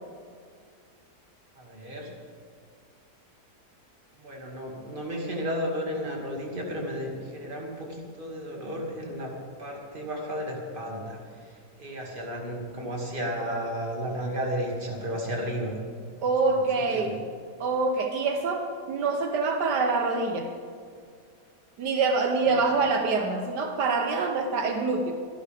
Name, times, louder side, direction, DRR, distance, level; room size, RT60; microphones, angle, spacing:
voice 1, 1.5-2.1 4.1-9.3 9.6-15.8 16.5-17.2 22.4-22.7, equal, 30° right, -1 dB, 2.5 m, -33 dB
voice 2, 16.2-17.2 17.6-20.5 21.8-25.1, right 4 dB, 80° right, 4 dB, 1.6 m, -25 dB
25.0 x 11.5 x 3.5 m, 2.2 s
omnidirectional pair, 1.8 m